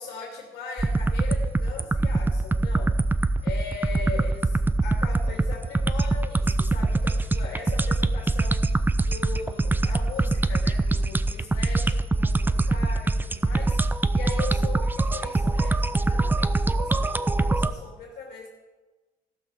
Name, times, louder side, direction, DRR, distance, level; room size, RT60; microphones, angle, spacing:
voice 1, 0.0-2.9 3.4-18.5, left 4 dB, 75° left, -1 dB, 2.8 m, -39 dB
sound 1, 0.8-17.7, right 2 dB, 10° right, 0.5 m, -23 dB
15.5 x 5.9 x 6.6 m, 1.2 s
cardioid pair, 110°, 17 cm